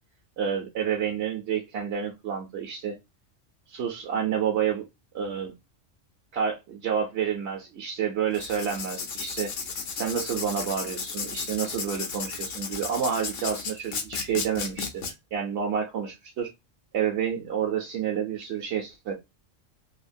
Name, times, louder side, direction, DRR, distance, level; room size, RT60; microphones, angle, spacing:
voice 1, 0.4-3.0 3.7-4.9 5.1-5.5 6.3-9.5 9.9-15.0 15.3-16.5 16.9-19.1, right 8 dB, 65° right, 0.9 m, -29 dB
Writing, 8.3-15.1, left 5 dB, 80° left, 1.1 m, -34 dB
2.8 x 2.4 x 2.5 m
omnidirectional pair, 1.3 m